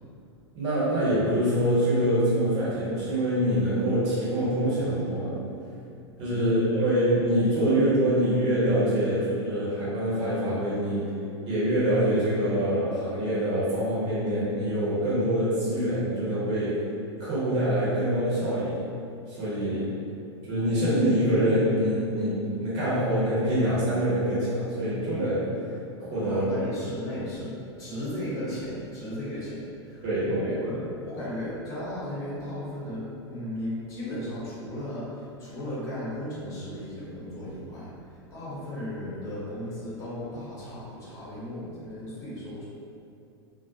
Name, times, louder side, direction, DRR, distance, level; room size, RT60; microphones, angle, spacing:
voice 1, 0.5-5.4 6.2-11.0 11.5-16.8 17.2-18.8 19.3-19.9 20.5-26.6 27.1-27.3 30.0-30.6, right 1 dB, 45° right, -10 dB, 1.0 m, -25 dB
voice 2, 26.2-42.6, left 1 dB, 20° left, -9 dB, 0.9 m, -36 dB
2.4 x 2.0 x 2.7 m, 2.5 s
figure-of-eight pair, 95°, 14 cm